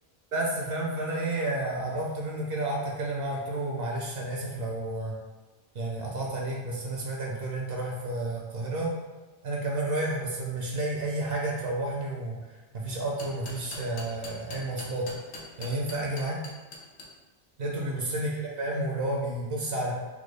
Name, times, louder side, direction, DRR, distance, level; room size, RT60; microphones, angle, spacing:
voice 1, 0.3-5.1 5.7-8.9 9.4-12.4 12.8-15.1 15.6-16.4 17.6-18.3 18.6-19.9, right 2 dB, 65° right, -3 dB, 0.8 m, -31 dB
sound 1, 12.9-17.0, left 2 dB, 85° left, 0.9 m, -42 dB
3.5 x 2.2 x 3.2 m, 1.2 s
omnidirectional pair, 1.1 m